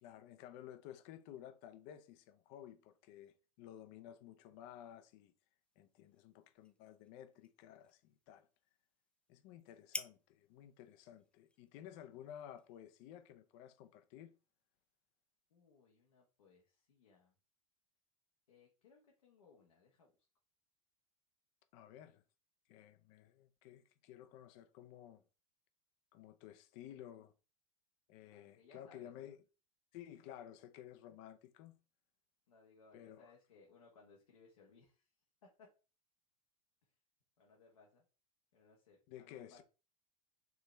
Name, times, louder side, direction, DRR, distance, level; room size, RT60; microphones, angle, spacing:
voice 1, 0.0-5.3 5.8-8.5 9.3-14.3 21.7-22.2 22.7-25.2 26.1-27.3 28.1-29.4 29.9-31.8 32.9-33.3 39.1-39.6, left 11 dB, 55° left, 0.7 m, -54 dB
sound 1, 5.6-13.3, left 2 dB, 5° left, 0.4 m, -54 dB
voice 2, 15.5-17.3 18.5-20.2 28.3-29.3 32.5-35.1 35.6-35.7 37.4-38.0 38.5-39.6, left 4 dB, 80° left, 1.2 m, -65 dB
4.7 x 3.0 x 3.3 m
hypercardioid pair, 90°, 18 cm